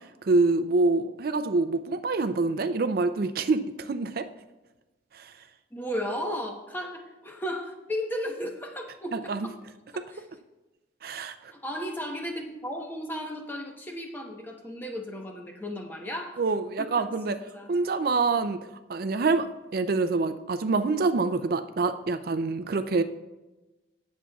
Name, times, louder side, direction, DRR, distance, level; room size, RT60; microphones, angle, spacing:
voice 1, 0.2-4.3 5.1-5.3 9.1-9.5 11.0-11.5 16.4-17.4 17.7-18.6 18.9-19.5 19.7-23.0, right 3 dB, 55° right, 9 dB, 0.4 m, -26 dB
voice 2, 5.7-9.6 9.9-10.2 11.5-16.4 16.8-17.7, equal, 10° left, 2 dB, 1.0 m, -35 dB
18.0 x 7.4 x 2.3 m, 1.1 s
head